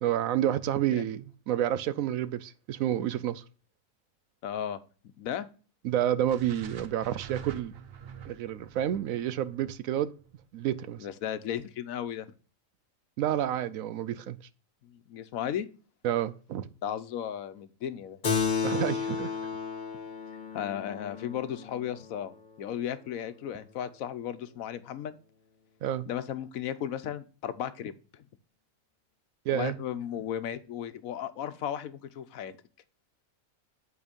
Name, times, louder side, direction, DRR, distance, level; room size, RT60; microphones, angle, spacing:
voice 1, 0.0-3.4 5.8-7.7 8.2-10.1 10.5-11.1 13.2-14.4 16.0-16.7 18.6-19.3 25.8-26.0 29.5-29.8, right 11 dB, 85° right, 1.0 m, -29 dB
voice 2, 4.4-4.8 5.2-5.5 11.0-12.3 14.8-15.7 16.8-18.2 20.5-25.2 26.1-28.2 29.5-32.6, left 10 dB, 90° left, 1.2 m, -35 dB
sound 1, 6.3-10.5, right 8 dB, 55° right, 0.9 m, -44 dB
Keyboard (musical), 18.2-23.1, left 6 dB, 40° left, 1.2 m, -33 dB
8.7 x 4.6 x 5.1 m
omnidirectional pair, 1.4 m